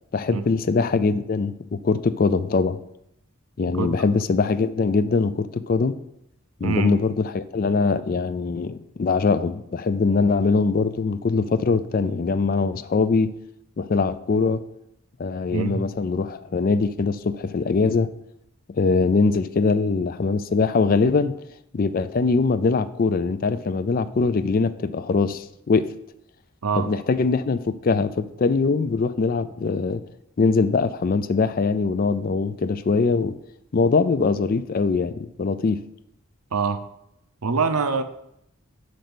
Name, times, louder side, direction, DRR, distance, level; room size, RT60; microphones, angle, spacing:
voice 1, 0.1-2.8 3.6-6.0 6.6-13.3 13.8-14.6 15.2-18.1 18.7-21.3 21.7-25.9 26.8-30.0 30.4-33.4 33.7-35.8, left 4 dB, 40° left, 14 dB, 0.3 m, -22 dB
voice 2, 3.7-4.1 6.6-6.9 15.5-15.8 26.6-26.9 36.5-36.8 37.4-38.0, right 5 dB, 85° right, 9 dB, 0.7 m, -24 dB
6.3 x 5.2 x 6.0 m, 0.79 s
head